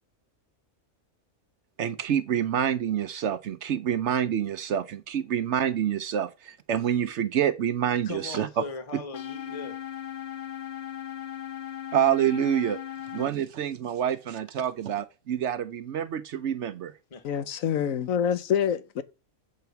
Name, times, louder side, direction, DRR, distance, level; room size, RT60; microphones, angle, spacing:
voice 1, 1.8-8.6 11.9-12.8 13.1-16.9, right 9 dB, 65° right, 0.8 m, -27 dB
voice 2, 8.0-9.8 17.1-17.5, left 4 dB, 25° left, 1.1 m, -39 dB
sound 1, 9.1-13.3, left 10 dB, 50° left, 0.9 m, -37 dB
voice 3, 17.2-19.0, left 8 dB, 75° left, 1.1 m, -26 dB
7.9 x 4.5 x 6.8 m
omnidirectional pair, 1.5 m